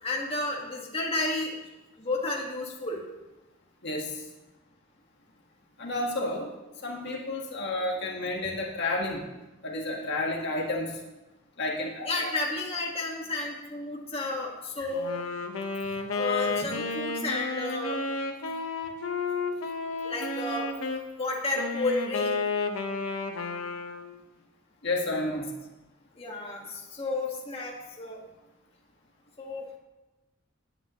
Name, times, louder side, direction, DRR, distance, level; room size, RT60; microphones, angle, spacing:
voice 1, 0.0-1.5 2.0-3.0 12.1-15.1 16.1-18.0 20.0-20.7 21.2-22.4 26.2-28.2 29.4-29.8, left 2 dB, 30° left, -2 dB, 1.8 m, -32 dB
voice 2, 3.8-4.3 5.8-6.5 6.8-9.3 9.6-11.0 11.6-12.3 14.8-14.9 24.8-25.5, left 2 dB, 60° left, -1 dB, 1.7 m, -31 dB
Wind instrument woodwind instrument, 14.9-21.0 21.5-24.2, left 3 dB, 85° left, 1.2 m, -32 dB
18.0 x 9.2 x 3.1 m, 1.1 s
head